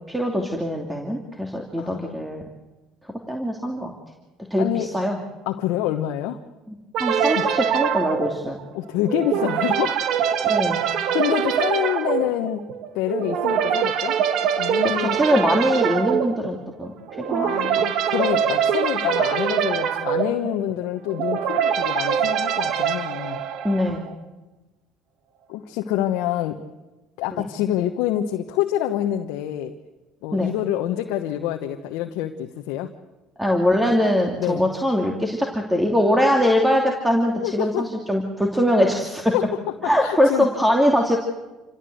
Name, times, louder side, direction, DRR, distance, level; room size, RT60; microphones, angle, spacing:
voice 1, 0.1-2.4 3.3-3.9 4.5-5.2 6.7-6.8 7.0-8.6 10.5-10.8 14.8-16.9 17.3-17.9 23.6-24.1 27.4-27.5 30.3-30.5 33.4-39.3 39.8-41.2, equal, 10° right, 1 dB, 2.7 m, -22 dB
voice 2, 1.8-2.3 4.6-5.0 5.5-6.4 7.2-7.5 8.7-10.0 11.1-12.7 12.9-14.2 14.6-15.2 17.4-23.4 25.5-26.6 27.2-29.7 30.2-32.9 34.4-34.6 37.4-37.9 39.3-39.5 40.0-40.5, left 12 dB, 75° left, 3 dB, 1.2 m, -26 dB
sound 1, 6.9-24.1, right 8 dB, 65° right, 1.5 m, -24 dB
27.5 x 16.0 x 8.0 m, 1.1 s
supercardioid pair, 80°, 0 cm